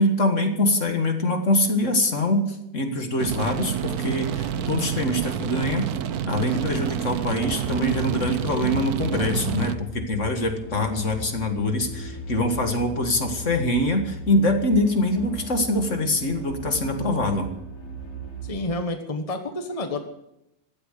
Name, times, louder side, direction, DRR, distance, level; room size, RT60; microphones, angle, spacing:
voice 1, 0.0-5.9 6.2-17.5, left 1 dB, 55° left, 5 dB, 2.2 m, -24 dB
sound 1, 3.2-9.8, right 9 dB, 80° right, 1.3 m, -28 dB
sound 2, 7.1-18.6, equal, 85° left, 6.5 m, -38 dB
voice 2, 18.4-20.0, left 2 dB, 25° left, 5 dB, 1.4 m, -29 dB
16.0 x 12.5 x 6.7 m, 0.85 s
omnidirectional pair, 1.6 m